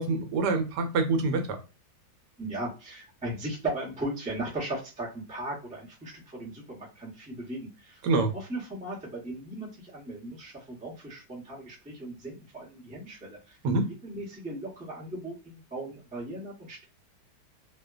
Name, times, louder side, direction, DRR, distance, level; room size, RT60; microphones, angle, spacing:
voice 1, 0.0-1.6 8.0-8.3 13.6-13.9, right 3 dB, 75° right, 5 dB, 1.1 m, -26 dB
voice 2, 2.4-8.1 8.3-13.6 13.9-16.9, right 1 dB, 15° right, -4 dB, 0.3 m, -37 dB
2.8 x 2.2 x 2.3 m, 0.31 s
omnidirectional pair, 1.9 m